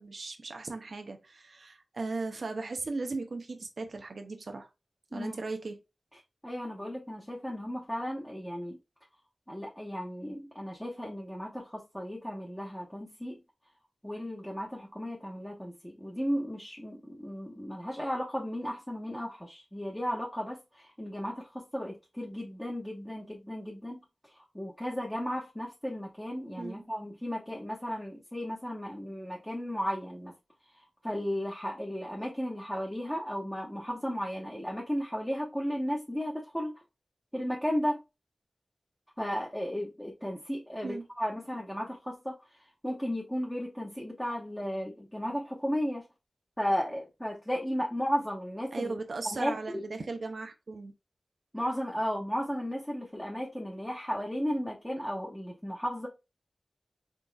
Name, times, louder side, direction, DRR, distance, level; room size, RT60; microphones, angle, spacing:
voice 1, 0.0-4.7 5.1-5.8 26.6-26.8 40.8-41.0 48.7-50.9, right 3 dB, 65° right, 0.7 m, -37 dB
voice 2, 6.4-8.8 9.5-13.4 14.0-30.3 30.7-36.7 37.3-38.0 39.2-42.4 42.8-46.0 46.6-48.9 49.2-49.9 51.5-56.1, equal, 5° left, 1.1 m, -34 dB
3.9 x 3.7 x 2.3 m
wide cardioid pair, 70°, 0 cm